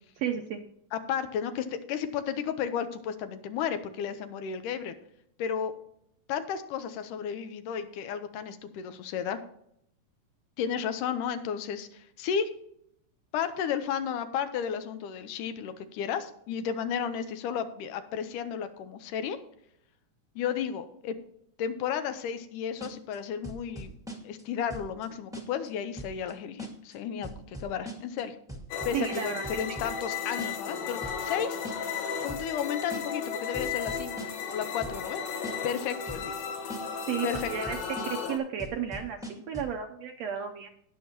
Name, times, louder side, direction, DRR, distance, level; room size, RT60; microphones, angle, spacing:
voice 1, 0.2-0.6 28.9-29.8 37.1-37.8 38.0-40.7, right 8 dB, 75° right, 5 dB, 1.6 m, -33 dB
voice 2, 0.9-5.0 5.4-5.7 6.3-9.4 10.6-12.5 13.3-19.4 20.4-21.2 21.6-24.0 24.2-28.4 28.9-31.6 32.2-34.1 34.5-35.2 35.6-36.4 37.2-37.5, left 8 dB, 90° left, 10 dB, 2.4 m, -33 dB
sound 1, 22.8-23.2 23.4-24.4 24.7-25.1 25.3-25.7 26.0-26.3 26.6-26.9 27.2-28.2 28.5-30.1 30.4-30.7 31.0-31.4 31.6-32.0 32.3-32.6 32.9-33.3 33.5-34.5 34.8-35.2 35.4-35.8 36.1-36.4 36.7-37.1 37.3-38.3 38.6-39.8, right 1 dB, 5° right, 0.6 m, -41 dB
sound 2, 28.7-38.4, left 6 dB, 65° left, 2.3 m, -35 dB
18.5 x 6.6 x 2.9 m, 0.73 s
omnidirectional pair, 3.7 m